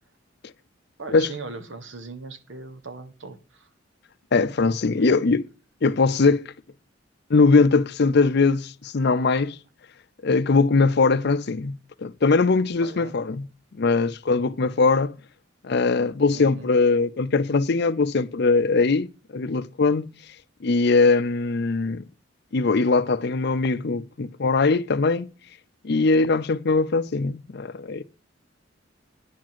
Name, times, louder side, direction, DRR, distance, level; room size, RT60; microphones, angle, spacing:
voice 1, 1.0-3.7 4.9-5.2 12.8-13.1 16.3-16.7, right 3 dB, 70° right, 1.4 m, -39 dB
voice 2, 4.3-5.4 5.8-6.5 7.3-9.6 10.2-13.5 13.7-15.2 15.6-20.1 20.6-22.0 22.5-25.3 25.8-28.0, left 4 dB, 55° left, 0.6 m, -21 dB
10.5 x 5.0 x 7.5 m
head